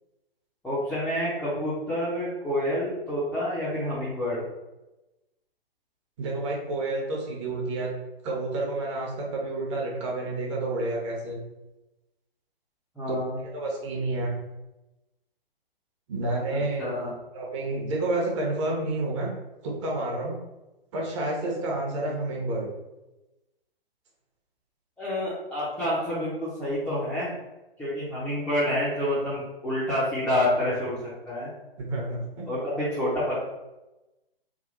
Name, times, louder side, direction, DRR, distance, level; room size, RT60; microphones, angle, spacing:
voice 1, 0.6-4.4 13.0-13.4 16.5-17.1 21.9-22.1 25.0-27.3 27.8-31.0 31.3-31.5 32.5-33.4, left 1 dB, 5° left, -12 dB, 0.5 m, -28 dB
voice 2, 6.2-7.9 8.2-11.4 13.1-13.2 13.5-14.3 16.1-16.9 17.3-19.3 19.6-20.4 20.9-22.7 31.8-32.4, right 2 dB, 30° right, -2 dB, 0.8 m, -29 dB
3.5 x 2.3 x 3.6 m, 1.0 s
figure-of-eight pair, 130°, 30 cm